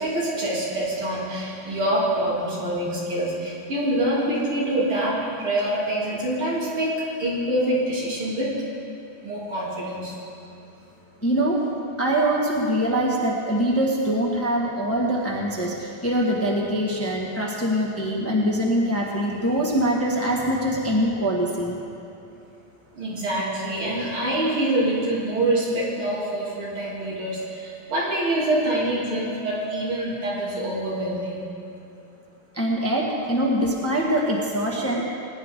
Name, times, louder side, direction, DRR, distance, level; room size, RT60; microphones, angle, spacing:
voice 1, 0.0-8.6 9.2-10.2 22.9-31.5, right 1 dB, 85° right, -7 dB, 3.9 m, -25 dB
voice 2, 11.2-11.6 12.0-21.8 32.6-35.1, right 1 dB, 10° left, -3 dB, 1.2 m, -23 dB
20.5 x 10.5 x 3.7 m, 2.7 s
omnidirectional pair, 2.3 m